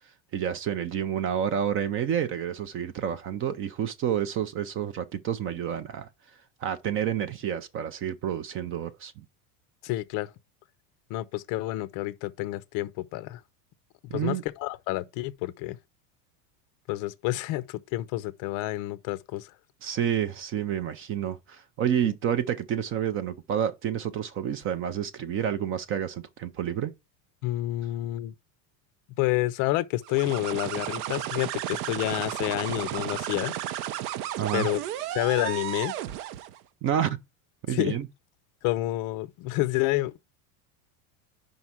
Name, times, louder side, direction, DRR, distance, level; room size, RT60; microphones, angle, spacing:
voice 1, 0.3-6.1 6.6-9.2 14.1-14.4 19.8-26.9 34.4-34.7 36.8-37.2 37.7-38.1, right 9 dB, 30° right, 0.4 m, -29 dB
voice 2, 9.8-10.3 11.1-13.4 14.1-15.8 16.9-19.5 22.0-22.1 27.4-28.3 29.2-33.5 34.5-34.8 35.1-35.9 37.7-37.9 38.6-40.2, left 17 dB, 45° left, 0.5 m, -29 dB
sound 1, 30.0-36.6, right 12 dB, 75° right, 0.8 m, -33 dB
5.3 x 4.7 x 5.7 m
supercardioid pair, 140°, 46 cm